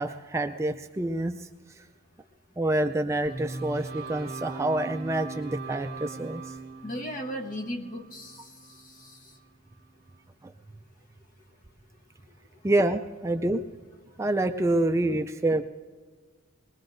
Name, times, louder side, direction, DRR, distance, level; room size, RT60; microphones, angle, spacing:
voice 1, 0.0-1.5 1.8-1.9 2.6-6.5 10.4-10.5 12.6-13.6 14.2-15.6, right 1 dB, 15° right, 6 dB, 0.3 m, -27 dB
sound 1, 3.2-9.5, right 3 dB, 50° right, 1.2 m, -40 dB
voice 2, 6.8-9.3, equal, 40° left, 4 dB, 1.1 m, -37 dB
20.5 x 20.5 x 2.6 m, 1.5 s
head